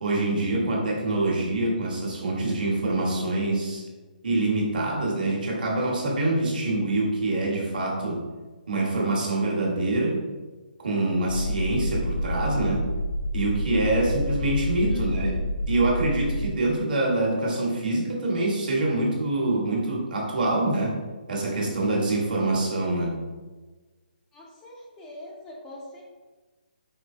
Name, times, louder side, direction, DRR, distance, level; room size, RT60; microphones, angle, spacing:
voice 1, 0.0-3.8 4.2-8.2 8.7-10.3 10.8-12.9 13.3-15.4 15.7-21.0 21.3-23.2, right 2 dB, 60° right, -2 dB, 1.4 m, -25 dB
sound 1, 11.3-16.6, equal, 75° left, 0.4 m, -28 dB
voice 2, 14.9-15.5 24.3-26.0, left 1 dB, 10° left, -4 dB, 0.3 m, -43 dB
5.1 x 3.4 x 2.7 m, 1.3 s
hypercardioid pair, 170°, 5 cm